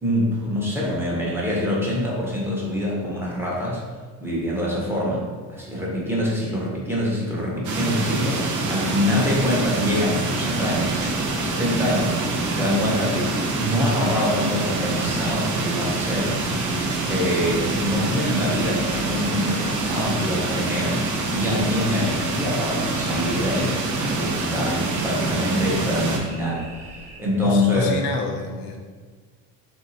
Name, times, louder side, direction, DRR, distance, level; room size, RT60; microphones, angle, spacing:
voice 1, 0.0-3.8 4.2-16.4 16.7-16.8 17.0-26.6 26.9-27.9, left 1 dB, 5° right, -5 dB, 0.9 m, -25 dB
sound 1, 7.6-26.2, right 2 dB, 50° right, 0.6 m, -26 dB
sound 2, 8.6-27.2, right 2 dB, 90° right, 0.9 m, -41 dB
voice 2, 27.4-28.8, left 4 dB, 80° left, 3 dB, 0.6 m, -27 dB
3.2 x 2.7 x 2.7 m, 1.5 s
supercardioid pair, 90°, 38 cm